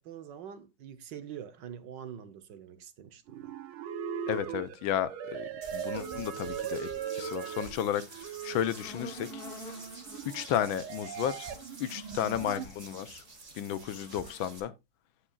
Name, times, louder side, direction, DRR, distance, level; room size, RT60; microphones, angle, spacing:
voice 1, 0.0-3.5, right 9 dB, 65° right, 1.6 m, -45 dB
sound 1, 3.3-12.7, right 8 dB, 90° right, 1.8 m, -39 dB
voice 2, 4.3-9.4 10.2-11.5 11.8-13.2 13.5-14.7, left 10 dB, 80° left, 1.5 m, -33 dB
sound 2, 5.6-14.6, right 3 dB, 25° right, 1.4 m, -49 dB
sound 3, 5.9-14.6, left 5 dB, 55° left, 1.3 m, -52 dB
16.0 x 6.2 x 2.4 m
omnidirectional pair, 2.2 m